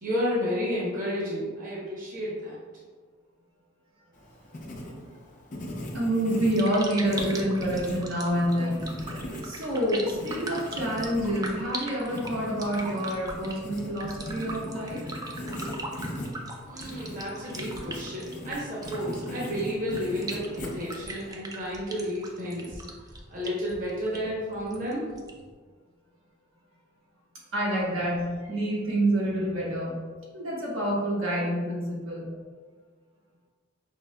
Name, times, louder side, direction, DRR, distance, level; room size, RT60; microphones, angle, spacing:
voice 1, 0.0-2.6 16.6-22.8 23.3-25.1, equal, 45° right, -5 dB, 0.8 m, -31 dB
Writing, 4.1-21.3, left 1 dB, 40° left, 0.6 m, -39 dB
voice 2, 5.9-8.9 9.4-15.0 27.5-30.0 30.3-32.3, right 1 dB, 90° right, -6 dB, 1.2 m, -27 dB
sound 1, 6.4-25.5, right 2 dB, 20° right, 0.3 m, -41 dB
5.2 x 2.8 x 2.2 m, 1.5 s
head